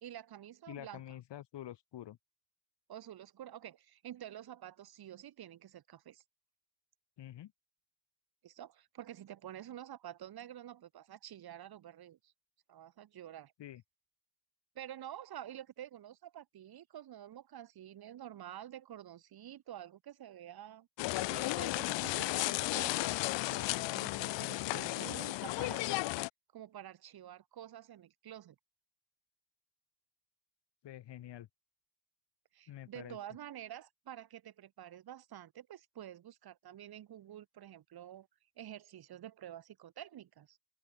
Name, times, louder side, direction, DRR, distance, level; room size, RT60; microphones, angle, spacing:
voice 1, 0.0-1.0 2.9-6.2 8.4-12.3 12.7-13.5 14.7-25.9 26.5-28.6 32.5-38.3 38.6-40.6, right 11 dB, 60° right, 1.2 m, -49 dB
voice 2, 0.7-2.2 7.2-7.5 13.6-13.8 30.8-31.5 32.7-33.2, left 12 dB, 75° left, 2.0 m, -47 dB
sound 1, 21.0-26.3, left 20 dB, 90° left, 0.7 m, -34 dB
open air
cardioid pair, 75°, 43 cm